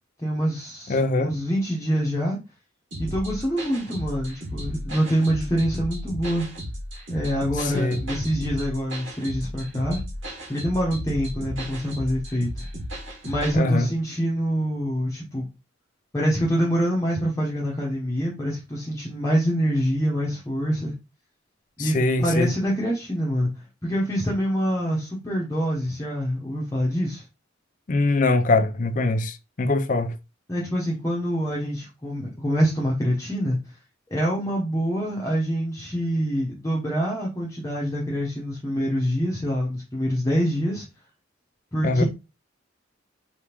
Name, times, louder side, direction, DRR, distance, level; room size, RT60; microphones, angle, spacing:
voice 1, 0.2-2.4 3.0-6.5 7.1-10.0 10.5-12.7 13.2-15.5 16.1-20.9 21.8-23.5 23.8-27.2 30.5-33.6 34.1-40.8 41.7-42.0, equal, 15° left, 0.9 m, -25 dB
voice 2, 0.9-1.3 7.7-8.0 13.5-13.9 21.8-22.5 27.9-30.1 41.8-42.0, left 2 dB, 40° left, 0.5 m, -22 dB
sound 1, 2.9-13.6, equal, 75° right, 2.1 m, -34 dB
4.5 x 3.5 x 3.0 m
head